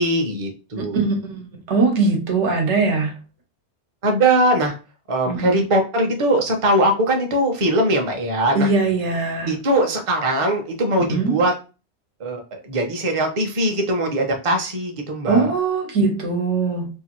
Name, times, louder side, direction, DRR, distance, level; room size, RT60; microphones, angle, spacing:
voice 1, 0.0-1.0 4.0-4.7 5.1-8.7 9.5-11.5 12.2-15.5, right 1 dB, 35° right, 0.7 m, -21 dB
voice 2, 0.7-3.1 5.3-5.7 8.5-9.5 11.0-11.4 15.3-16.9, right 4 dB, 90° right, 1.1 m, -21 dB
2.8 x 2.5 x 2.9 m
omnidirectional pair, 1.2 m